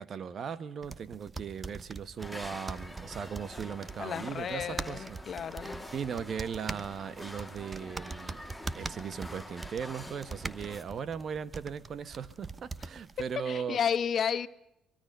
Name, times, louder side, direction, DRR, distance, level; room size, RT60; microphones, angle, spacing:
voice 1, 0.0-5.5 5.9-8.4 8.7-13.8, right 7 dB, 50° right, 1.1 m, -38 dB
sound 1, 0.8-13.4, right 3 dB, 30° right, 1.0 m, -43 dB
sound 2, 2.2-10.8, left 1 dB, ahead, 3.4 m, -46 dB
voice 2, 4.0-5.9 13.5-14.5, left 8 dB, 50° left, 1.0 m, -32 dB
24.0 x 22.5 x 5.5 m
hypercardioid pair, 60°, 0 cm